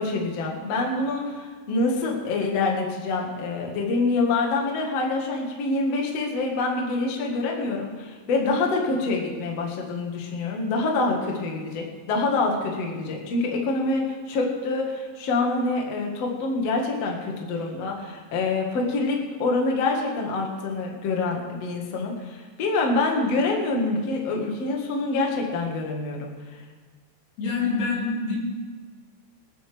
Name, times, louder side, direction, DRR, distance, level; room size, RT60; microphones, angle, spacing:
voice 1, 0.0-26.3, left 3 dB, 55° left, 0 dB, 1.8 m, -26 dB
voice 2, 27.4-28.4, left 4 dB, 75° left, -6 dB, 6.7 m, -26 dB
26.5 x 9.4 x 3.5 m, 1.4 s
omnidirectional pair, 5.7 m